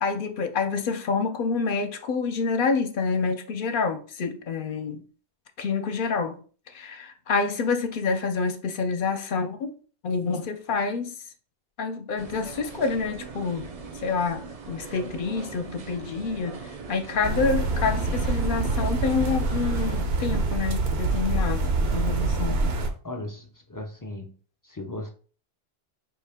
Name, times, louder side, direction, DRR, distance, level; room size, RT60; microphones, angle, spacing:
voice 1, 0.0-5.1 5.6-6.4 6.7-9.7 10.0-11.2 11.8-13.7 13.9-14.4 14.7-16.6 16.9-21.6 21.9-22.6, left 4 dB, 60° left, 0.7 m, -27 dB
sound 1, 12.2-20.1, right 4 dB, 45° right, 0.5 m, -40 dB
sound 2, 17.2-22.9, right 2 dB, 85° right, 0.9 m, -25 dB
voice 2, 23.0-24.3 24.6-25.1, left 2 dB, 35° left, 0.3 m, -36 dB
4.7 x 2.7 x 3.4 m
omnidirectional pair, 1.0 m